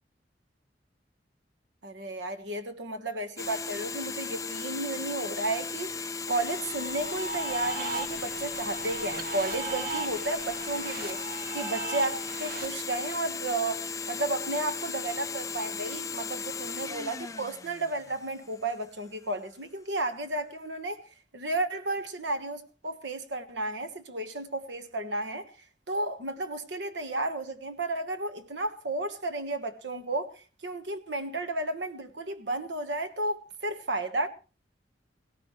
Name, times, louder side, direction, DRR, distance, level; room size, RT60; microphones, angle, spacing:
voice 1, 1.8-11.2 11.5-13.8 14.1-21.0 21.3-25.5 25.9-34.3, right 2 dB, 90° right, 1.5 m, -33 dB
sound 1, 3.4-18.6, left 5 dB, 20° left, 0.7 m, -36 dB
sound 2, 6.4-12.7, right 3 dB, 55° right, 1.8 m, -37 dB
18.0 x 17.0 x 3.2 m
head